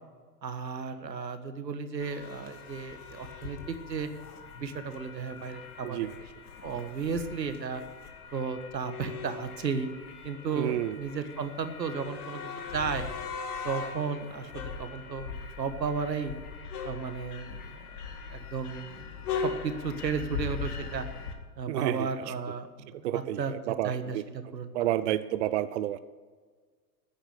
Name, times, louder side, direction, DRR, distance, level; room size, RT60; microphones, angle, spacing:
voice 1, 0.4-4.1 4.6-6.0 6.6-7.8 8.3-9.9 10.2-13.1 13.6-16.3 16.8-17.8 18.3-21.0 21.6-24.9, right 5 dB, 85° right, 9 dB, 1.6 m, -34 dB
sound 1, 2.0-21.3, left 5 dB, 65° left, 2.2 m, -40 dB
voice 2, 10.5-11.0 21.7-22.3 23.0-24.2 24.7-26.0, right 13 dB, 45° right, 14 dB, 0.6 m, -30 dB
14.5 x 10.0 x 6.6 m, 1.5 s
hypercardioid pair, 115°, 49 cm